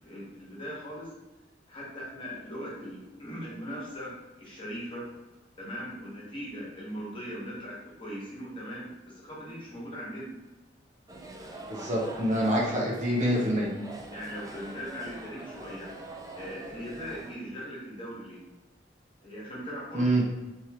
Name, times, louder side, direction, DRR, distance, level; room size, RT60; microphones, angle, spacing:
voice 1, 0.0-1.1 1.7-5.1 5.6-10.3 14.1-15.9 16.3-18.4 19.2-20.1, equal, 30° left, -6 dB, 1.3 m, -39 dB
sound 1, 11.1-17.3, right 2 dB, 20° right, 0.4 m, -44 dB
voice 2, 11.7-13.7 19.9-20.3, right 1 dB, 40° right, -4 dB, 0.9 m, -26 dB
3.6 x 3.0 x 2.9 m, 1.1 s
head